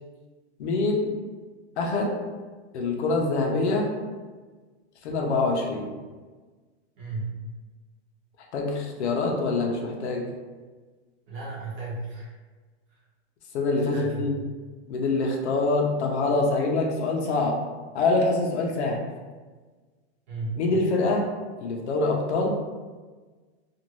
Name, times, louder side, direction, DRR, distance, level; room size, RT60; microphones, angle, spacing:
voice 1, 0.6-1.1 1.8-2.1 2.7-3.9 5.0-5.9 8.5-10.3 13.5-14.3 14.9-17.6 17.9-19.1 20.6-21.3 21.6-22.5, left 3 dB, 80° left, 0 dB, 0.7 m, -25 dB
voice 2, 7.0-7.4 11.3-12.3 13.9-14.5 20.3-20.6, right 3 dB, 30° right, -6 dB, 0.8 m, -34 dB
2.6 x 2.5 x 3.0 m, 1.4 s
supercardioid pair, 175°, 33 cm